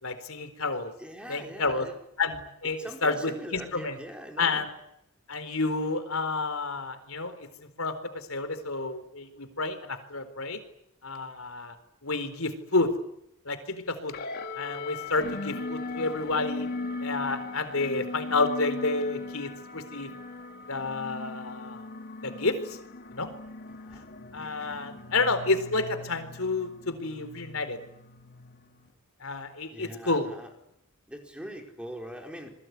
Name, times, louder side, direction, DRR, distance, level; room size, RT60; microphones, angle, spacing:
voice 1, 0.0-0.9 1.3-1.9 2.2-4.0 4.4-4.7 5.3-7.3 7.8-10.6 11.0-11.7 12.0-12.9 13.5-14.1 14.6-16.7 17.0-20.1 20.7-21.8 22.2-22.8 23.1-23.3 24.3-27.8 29.2-30.3, left 3 dB, 70° left, 10 dB, 4.2 m, -30 dB
voice 2, 1.0-1.9 2.8-4.6 23.8-24.1 29.7-30.5 31.1-32.5, equal, 5° right, 3 dB, 4.9 m, -42 dB
sound 1, 14.1-28.9, left 3 dB, 50° left, 3.2 m, -39 dB
28.0 x 21.5 x 9.6 m, 0.78 s
head